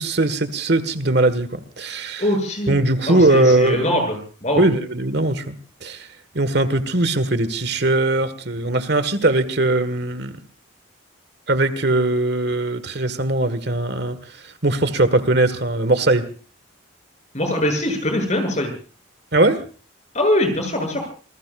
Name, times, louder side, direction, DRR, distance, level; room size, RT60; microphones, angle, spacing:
voice 1, 0.0-2.2 2.7-3.9 4.6-5.5 5.8-6.1 6.3-10.3 11.5-16.3 19.3-19.6, right 2 dB, 55° right, 12 dB, 1.7 m, -20 dB
voice 2, 2.2-2.8 3.1-4.6 17.3-18.7 20.1-21.1, left 1 dB, 35° left, 5 dB, 7.7 m, -22 dB
28.5 x 20.0 x 2.5 m, 0.38 s
head